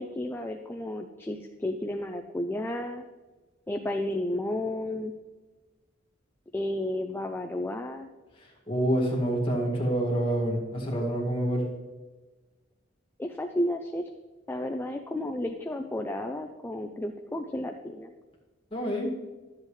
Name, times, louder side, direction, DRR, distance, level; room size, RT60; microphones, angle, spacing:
voice 1, 0.0-3.0 3.7-5.1 6.5-8.1 13.2-14.0 14.5-18.1, left 1 dB, 10° left, 4 dB, 0.4 m, -32 dB
voice 2, 8.4-11.7 18.7-19.1, right 1 dB, 30° left, -2 dB, 2.0 m, -27 dB
12.0 x 7.6 x 3.2 m, 1.2 s
head